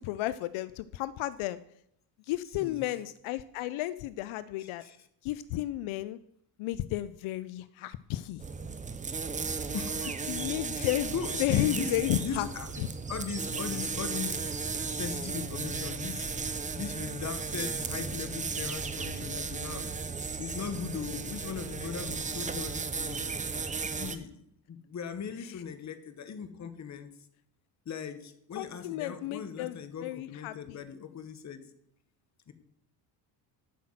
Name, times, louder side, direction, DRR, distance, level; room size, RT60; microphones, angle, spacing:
voice 1, 0.0-1.6 2.2-4.8 5.2-6.2 6.6-8.4 10.3-11.1 11.4-12.5 12.8-12.9 25.4-25.5 28.6-30.8, left 15 dB, 80° left, 16 dB, 0.6 m, -33 dB
voice 2, 4.6-5.0 9.7-10.3 10.7-11.9 12.2-12.7 13.1-14.5 14.9-16.4 16.7-23.3 23.9-24.4 24.7-27.1 27.8-31.6 32.5-32.6, left 7 dB, 35° left, 10 dB, 1.1 m, -39 dB
sound 1, 8.4-24.2, right 5 dB, 15° right, 0.5 m, -35 dB
sound 2, 18.4-20.4, right 6 dB, 55° right, 1.4 m, -54 dB
8.4 x 5.8 x 7.6 m, 0.74 s
cardioid pair, 125°, 48 cm